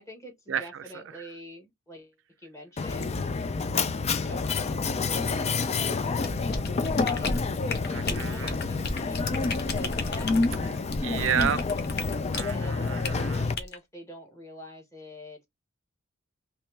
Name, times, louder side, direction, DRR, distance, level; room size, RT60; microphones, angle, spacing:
voice 1, 0.0-3.2 4.1-6.0 6.4-10.7 12.5-12.9 13.4-15.5, left 1 dB, 15° left, 1.4 m, -46 dB
Mechanisms, 2.8-13.5, left 4 dB, 35° left, 0.4 m, -28 dB
sound 1, 6.2-12.5 13.0-13.2 13.6-13.8, left 3 dB, 55° left, 0.8 m, -33 dB
voice 2, 7.9-8.5 11.0-11.6 12.3-13.5, right 8 dB, 70° right, 0.4 m, -30 dB
3.2 x 3.0 x 3.2 m
head